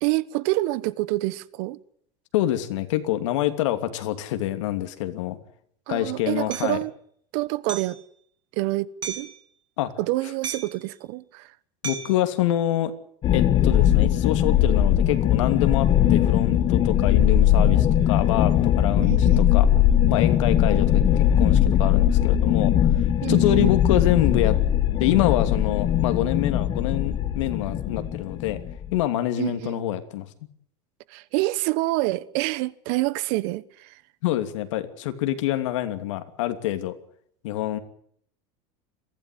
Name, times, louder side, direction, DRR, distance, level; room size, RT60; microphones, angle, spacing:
voice 1, 0.0-1.8 5.9-6.9 7.3-8.0 8.5-9.3 10.0-11.5 19.0-19.4 23.2-23.7 29.4-29.8 31.1-33.9, right 19 dB, 60° right, 1.1 m, -27 dB
voice 2, 2.3-5.4 5.9-6.8 9.8-9.9 11.8-12.9 13.3-19.7 20.1-22.7 23.3-24.5 25.0-28.6 28.9-30.3 34.2-36.9 37.4-37.8, left 13 dB, 85° left, 2.9 m, -26 dB
Hammer, 6.5-6.7 7.7-8.0 9.0-9.4 10.4-10.8 11.8-12.2, right 6 dB, 30° right, 3.8 m, -34 dB
sound 1, 13.2-29.0, left 10 dB, 30° left, 1.3 m, -20 dB
23.0 x 15.5 x 9.9 m
supercardioid pair, 160°, 15 cm